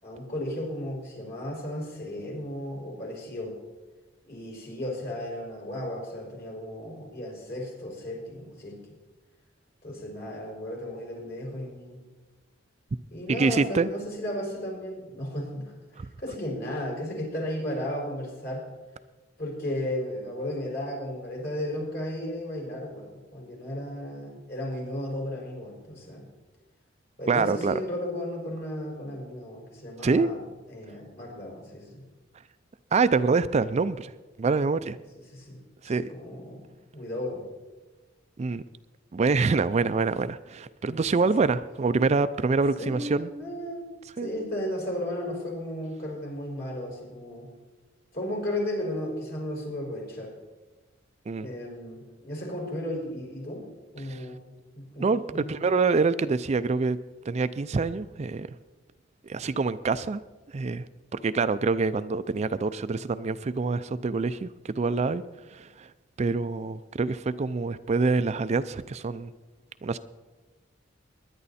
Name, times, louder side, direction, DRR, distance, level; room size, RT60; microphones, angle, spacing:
voice 1, 0.0-3.6 4.3-8.8 9.8-12.0 13.1-15.7 16.2-18.7 19.4-26.3 27.2-30.4 30.7-32.0 35.3-35.6 35.8-37.4 40.9-41.1 42.8-43.9 44.2-47.5 48.1-50.3 51.4-53.7 53.9-54.4 54.8-55.1 55.3-55.6, left 1 dB, 55° left, -1 dB, 5.3 m, -34 dB
voice 2, 13.4-13.9 16.0-16.1 27.3-27.8 30.0-30.3 32.9-34.1 34.4-35.0 35.8-36.1 38.4-38.6 39.1-43.3 44.2-44.3 51.3-51.5 54.0-54.3 55.0-57.0 57.3-58.5 59.2-60.2 60.5-65.2 65.5-65.9 66.2-69.3 69.8-70.0, right 4 dB, 35° right, 13 dB, 0.4 m, -26 dB
20.0 x 10.5 x 4.2 m, 1.2 s
head